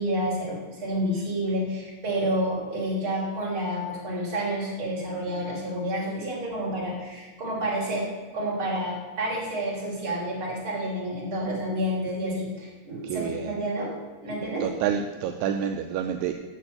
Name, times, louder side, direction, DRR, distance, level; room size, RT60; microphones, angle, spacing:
voice 1, 0.0-8.1 8.3-13.9 14.2-14.7, equal, 45° right, -5 dB, 4.2 m, -29 dB
voice 2, 13.0-13.5 14.6-16.3, right 8 dB, 80° right, 5 dB, 2.0 m, -28 dB
8.9 x 6.7 x 8.0 m, 1.3 s
omnidirectional pair, 3.4 m